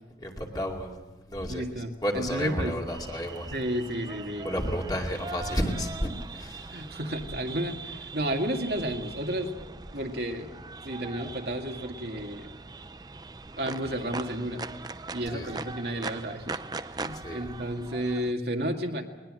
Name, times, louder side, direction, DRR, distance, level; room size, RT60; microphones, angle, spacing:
voice 1, 0.2-1.0 1.3-3.5 4.4-6.8 15.3-15.7 17.1-17.4, equal, 20° left, 1 dB, 2.6 m, -32 dB
voice 2, 1.5-1.9 2.1-2.7 3.5-4.5 6.7-9.5 9.9-10.5 10.8-12.5 13.6-14.6 15.1-16.6 16.9-19.0, right 1 dB, 65° right, 2 dB, 2.1 m, -32 dB
sound 1, 2.9-18.3, right 3 dB, 20° right, 0.6 m, -41 dB
21.0 x 20.5 x 7.7 m, 1.2 s
head